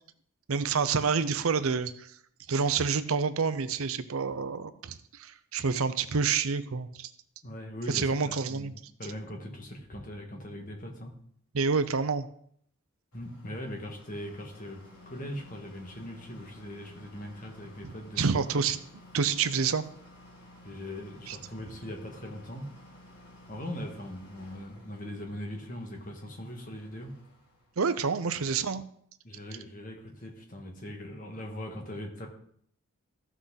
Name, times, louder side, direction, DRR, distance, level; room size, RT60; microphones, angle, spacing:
voice 1, 0.5-2.1 2.5-7.1 7.9-8.7 11.5-12.3 17.8-17.9 18.2-18.8 19.1-19.8 21.3-21.4 27.8-28.8, right 5 dB, 70° right, 12 dB, 0.6 m, -28 dB
voice 2, 7.4-11.1 13.1-18.3 20.6-22.7 23.5-27.1 28.4-28.5 29.2-32.3, left 1 dB, 40° left, 2 dB, 1.6 m, -40 dB
sound 1, 13.1-27.8, left 1 dB, 85° left, 3.7 m, -54 dB
14.0 x 6.1 x 4.0 m, 0.65 s
head